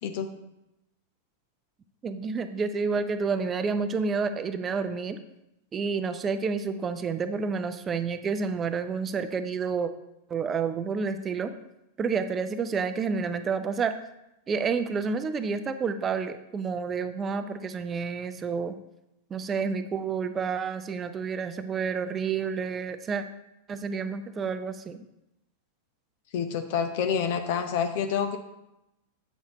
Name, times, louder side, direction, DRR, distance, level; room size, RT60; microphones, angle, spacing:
voice 1, 2.0-5.2 5.7-9.9 10.3-11.5 12.0-13.9 14.5-18.7 19.3-23.2 23.7-25.0, right 5 dB, 20° right, 10 dB, 0.5 m, -29 dB
voice 2, 26.3-28.4, left 7 dB, 50° left, 7 dB, 0.6 m, -28 dB
8.1 x 6.5 x 3.0 m, 0.89 s
figure-of-eight pair, 95°, 0 cm